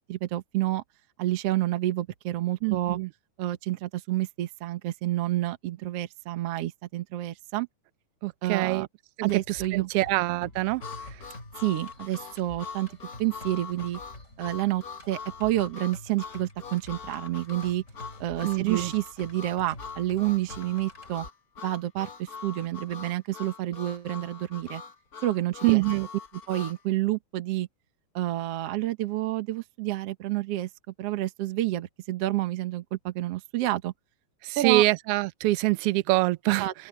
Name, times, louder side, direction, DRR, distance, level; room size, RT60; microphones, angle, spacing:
voice 1, 0.1-0.8 1.2-3.0 3.4-7.7 8.4-8.9 9.2-9.9 11.6-12.9 13.2-14.0 14.4-17.8 18.2-21.3 21.6-24.8 25.2-25.8 26.5-27.7 28.1-30.7 31.0-33.9 34.6-34.9 36.6-36.7, right 15 dB, 60° right, 2.0 m, -29 dB
voice 2, 2.6-3.1 8.2-8.9 9.2-10.8 18.4-18.9 25.6-26.1 34.4-36.7, right 19 dB, 85° right, 1.3 m, -25 dB
sound 1, 9.3-21.3, left 1 dB, 25° left, 5.2 m, -47 dB
Harmonica, 10.8-26.8, left 5 dB, 55° left, 1.1 m, -43 dB
open air
omnidirectional pair, 3.4 m